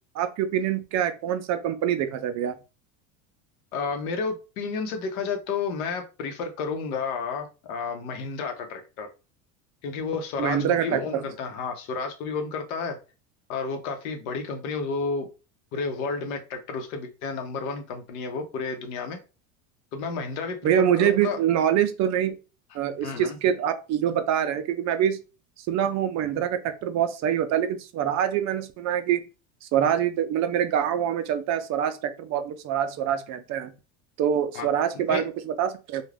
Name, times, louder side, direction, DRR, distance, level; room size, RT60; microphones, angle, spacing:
voice 1, 0.1-2.5 10.4-11.2 20.6-22.4 22.7-25.2 25.7-29.2 29.7-33.7 34.2-36.0, right 9 dB, 40° right, 8 dB, 0.4 m, -25 dB
voice 2, 3.7-9.1 9.8-13.0 13.5-15.3 15.7-19.2 19.9-21.4 23.0-23.4 34.5-34.7 35.1-35.2, left 4 dB, 80° left, 6 dB, 0.9 m, -31 dB
2.5 x 2.3 x 3.3 m, 0.31 s
supercardioid pair, 120°, 42 cm